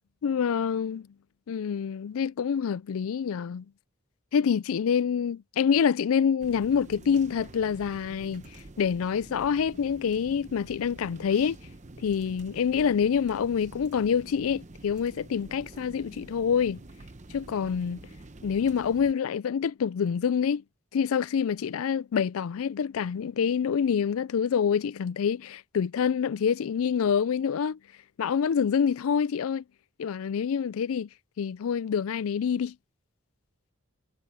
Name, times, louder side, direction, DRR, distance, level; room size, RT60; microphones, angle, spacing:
voice 1, 0.2-1.1 1.5-3.6 4.3-8.4 8.8-11.6 12.0-16.8 17.3-18.0 18.4-20.6 20.9-27.8 28.2-29.6 30.0-31.1 31.4-32.7, left 7 dB, 75° left, 0.4 m, -26 dB
sound 1, 6.4-19.1, right 2 dB, 35° right, 0.9 m, -47 dB
head